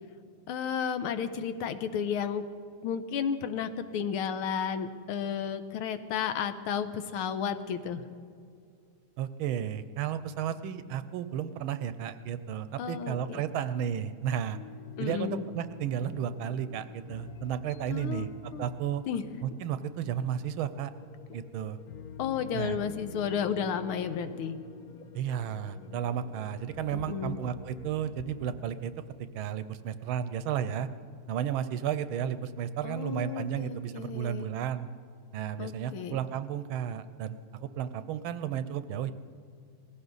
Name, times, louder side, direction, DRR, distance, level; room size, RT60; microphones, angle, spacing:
voice 1, 0.5-2.4 2.8-8.0 12.8-13.4 15.0-15.4 17.9-18.7 19.1-19.2 22.2-24.6 27.1-27.4 32.8-34.5 35.6-36.2, left 7 dB, 80° left, 10 dB, 1.7 m, -33 dB
voice 2, 9.2-14.6 15.0-19.0 19.4-20.9 21.3-21.8 22.5-22.8 25.1-28.9 29.3-30.9 31.3-34.9 35.3-39.1, right 9 dB, 80° right, 13 dB, 1.4 m, -33 dB
sound 1, 14.5-28.7, left 6 dB, 65° left, 0.9 m, -47 dB
19.0 x 16.0 x 4.0 m, 2.3 s
omnidirectional pair, 2.4 m